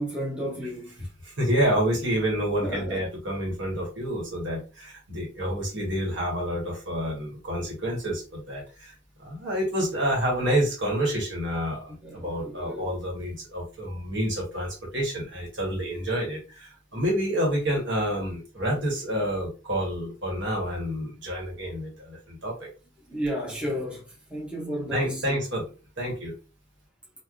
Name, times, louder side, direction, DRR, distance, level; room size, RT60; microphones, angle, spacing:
voice 1, 0.0-1.1 1.4-1.5 2.6-3.0 12.0-12.9 13.2-13.3 23.1-25.4, equal, 5° right, 0.7 m, -33 dB
voice 2, 1.2-8.9 9.2-22.7 24.9-25.6 26.0-26.3, equal, 60° right, 1.4 m, -28 dB
3.2 x 2.4 x 2.5 m
head